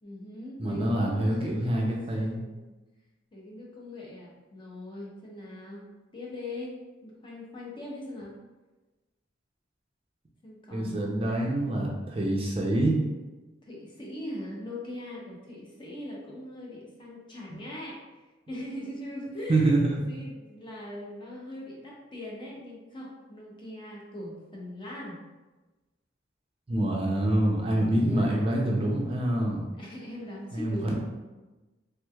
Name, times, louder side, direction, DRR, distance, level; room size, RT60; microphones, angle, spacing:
voice 1, 0.0-1.8 2.2-2.7 3.3-8.3 10.4-11.1 13.6-18.0 18.5-25.2 28.0-28.7 29.8-30.9, left 1 dB, 25° left, -4 dB, 0.7 m, -41 dB
voice 2, 0.6-2.4 10.7-12.9 19.5-20.0 26.7-29.6 30.5-30.9, right 1 dB, 30° right, -2 dB, 0.4 m, -26 dB
3.3 x 3.1 x 2.2 m, 1.2 s
head